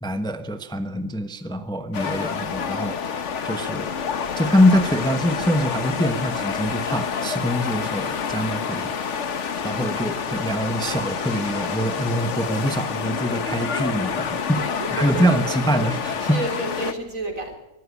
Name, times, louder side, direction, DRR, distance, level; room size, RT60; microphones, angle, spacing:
voice 1, 0.0-3.9 4.4-9.3 9.6-16.4, equal, 5° left, 9 dB, 1.0 m, -24 dB
sound 1, 1.9-16.9, left 6 dB, 55° left, 1.4 m, -28 dB
voice 2, 14.8-15.4 16.2-17.5, right 2 dB, 65° right, 5 dB, 3.7 m, -31 dB
24.0 x 13.5 x 8.4 m, 1.0 s
omnidirectional pair, 1.5 m